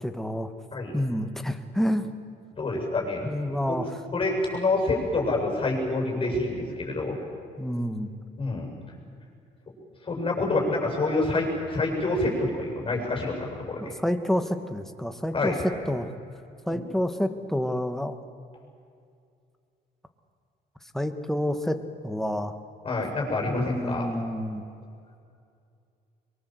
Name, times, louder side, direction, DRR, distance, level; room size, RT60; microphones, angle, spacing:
voice 1, 0.0-0.5 0.9-2.1 3.2-3.9 7.6-8.1 13.8-16.1 16.7-18.2 20.9-21.8 22.0-22.5 23.5-24.6, equal, ahead, 7 dB, 1.7 m, -28 dB
voice 2, 2.5-3.3 3.7-3.8 4.1-7.2 8.4-8.7 10.0-13.9 15.3-15.6 16.6-16.8 22.8-24.1, left 2 dB, 30° left, 0 dB, 7.7 m, -27 dB
23.5 x 23.0 x 8.0 m, 2.4 s
cardioid pair, 110°, 17 cm